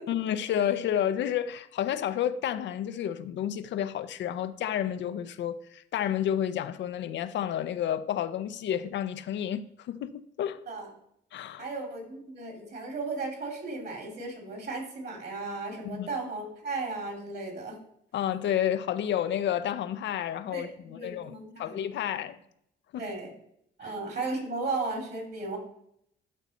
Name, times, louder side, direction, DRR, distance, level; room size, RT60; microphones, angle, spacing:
voice 1, 0.1-10.6 11.3-11.6 15.8-16.1 18.1-22.4 22.9-23.0 23.8-23.9, left 10 dB, 65° left, 0.5 m, -30 dB
voice 2, 11.6-17.8 20.5-21.7 23.0-23.3 23.8-25.6, right 3 dB, 55° right, 2.8 m, -35 dB
12.0 x 4.1 x 4.1 m
cardioid pair, 90°, 20 cm